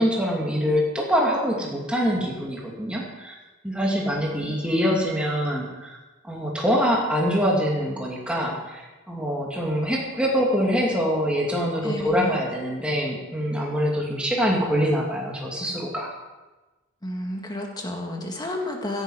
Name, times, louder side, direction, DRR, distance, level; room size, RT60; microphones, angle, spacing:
voice 1, 0.0-3.3 3.6-6.0 6.2-16.1, equal, 5° right, -3 dB, 2.6 m, -24 dB
voice 2, 3.8-4.6 11.8-12.4 17.0-19.0, left 1 dB, 20° left, 2 dB, 1.7 m, -32 dB
17.0 x 11.0 x 5.0 m, 1.2 s
head